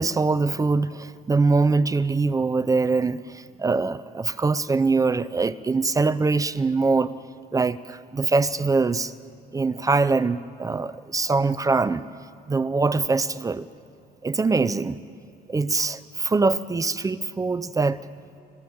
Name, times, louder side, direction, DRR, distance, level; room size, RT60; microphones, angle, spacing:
voice 1, 0.0-7.1 7.5-9.1 9.5-12.0 12.5-13.7 14.2-15.0 15.5-18.0, right 3 dB, 20° right, 15 dB, 0.6 m, -23 dB
28.5 x 14.5 x 7.9 m, 2.7 s
cardioid pair, 110°, 17 cm